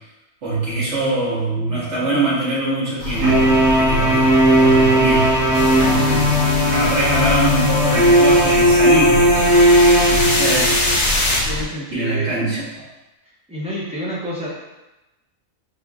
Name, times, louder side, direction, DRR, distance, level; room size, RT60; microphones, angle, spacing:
voice 1, 0.4-6.3 6.7-9.3 10.1-10.8 11.9-12.8, right 2 dB, 60° right, -8 dB, 1.5 m, -23 dB
sound 1, 3.0-11.6, left 3 dB, 85° left, 1.0 m, -27 dB
sound 2, 3.2-10.9, equal, 25° right, 1.0 m, -16 dB
sound 3, 5.5-11.4, left 1 dB, 60° left, 1.0 m, -24 dB
voice 2, 11.4-12.3 13.5-14.5, equal, 5° right, -8 dB, 0.6 m, -28 dB
4.9 x 2.7 x 2.4 m, 1.0 s
omnidirectional pair, 1.4 m